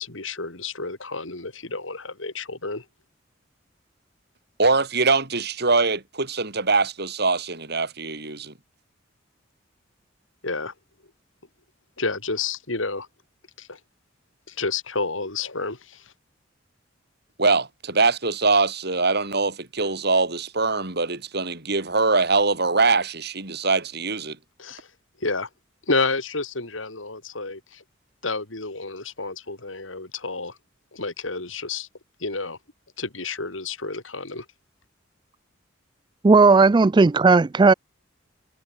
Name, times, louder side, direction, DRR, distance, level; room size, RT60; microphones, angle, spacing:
voice 1, 0.0-2.8 10.4-10.7 12.0-13.1 13.6-13.8 14.5-16.0 24.6-24.9 25.2-25.5 25.9-27.8 28.2-30.6 30.9-31.9 32.2-32.6 33.0-34.5, left 3 dB, 80° left, 4.2 m, -30 dB
voice 2, 4.6-8.5 17.4-24.4, right 3 dB, 55° right, 5.0 m, -23 dB
voice 3, 36.2-37.7, right 4 dB, 25° right, 0.3 m, -15 dB
head